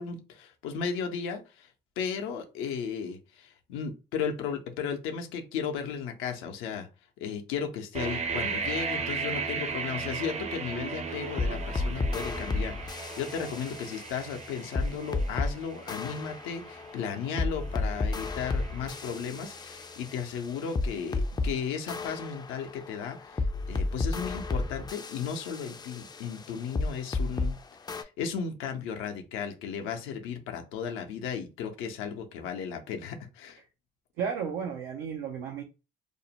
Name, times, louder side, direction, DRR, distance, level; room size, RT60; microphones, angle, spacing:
voice 1, 0.0-1.7 2.0-6.9 7.2-27.5 27.9-33.6, left 6 dB, 85° left, 0.6 m, -35 dB
sound 1, 7.9-19.7, right 5 dB, 35° right, 0.6 m, -37 dB
sound 2, 11.1-15.5 15.9-21.5 21.9-27.5 27.9-28.0, left 3 dB, 20° left, 0.3 m, -33 dB
voice 2, 34.2-35.6, right 7 dB, 90° right, 0.5 m, -33 dB
2.5 x 2.0 x 2.8 m
supercardioid pair, 65°, 20 cm